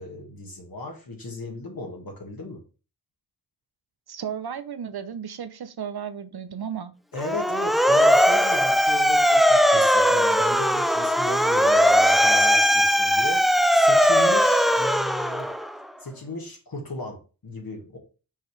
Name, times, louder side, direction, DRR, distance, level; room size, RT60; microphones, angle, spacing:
voice 1, 0.0-2.6 7.1-15.5 16.0-18.0, left 2 dB, 55° left, 1.7 m, -36 dB
voice 2, 4.1-7.0, right 8 dB, 60° right, 0.8 m, -34 dB
Motor vehicle (road) / Siren, 7.2-15.8, equal, ahead, 0.3 m, -19 dB
5.6 x 5.2 x 3.2 m
cardioid pair, 60°, 42 cm